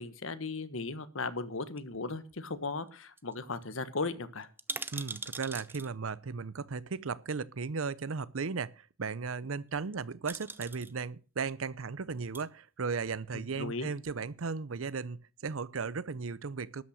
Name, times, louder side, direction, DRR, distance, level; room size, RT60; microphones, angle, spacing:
voice 1, 0.0-4.5 13.3-13.9, left 3 dB, 70° left, 1.3 m, -37 dB
sound 1, 1.8-2.6 2.9-3.0 3.2-3.3 3.6-3.7 4.4-5.9 7.1-7.2 9.7-9.9 10.3-10.9 12.1-12.4 13.1-13.8 14.1-14.2, right 3 dB, 10° right, 0.6 m, -42 dB
voice 2, 4.9-16.8, right 5 dB, 75° right, 0.7 m, -36 dB
12.5 x 8.8 x 6.4 m
head